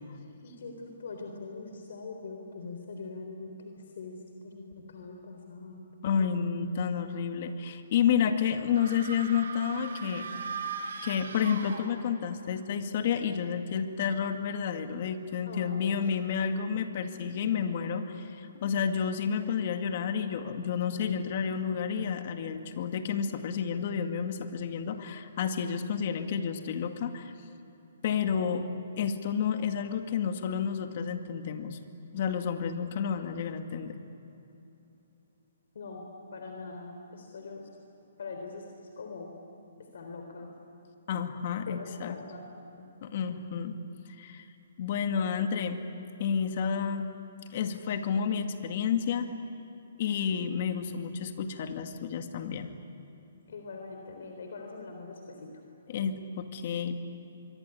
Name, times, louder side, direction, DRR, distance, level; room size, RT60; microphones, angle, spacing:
voice 1, 0.4-6.4 15.5-16.1 18.5-18.6 35.7-36.1 36.3-37.7 38.2-39.4 39.9-40.6 41.7-42.9 53.5-55.6, left 3 dB, 70° left, 3 dB, 3.8 m, -43 dB
voice 2, 6.0-10.3 11.0-27.3 28.0-28.7 29.0-31.8 32.1-34.0 41.1-42.2 43.0-43.7 44.2-44.4 44.8-45.8 46.2-47.1 47.5-49.3 50.0-52.7 55.9-57.0, left 7 dB, 45° left, 6 dB, 2.1 m, -30 dB
sound 1, 8.7-12.3, right 5 dB, 70° right, 4.4 m, -39 dB
25.0 x 24.0 x 9.9 m, 2.9 s
hypercardioid pair, 160°, 0 cm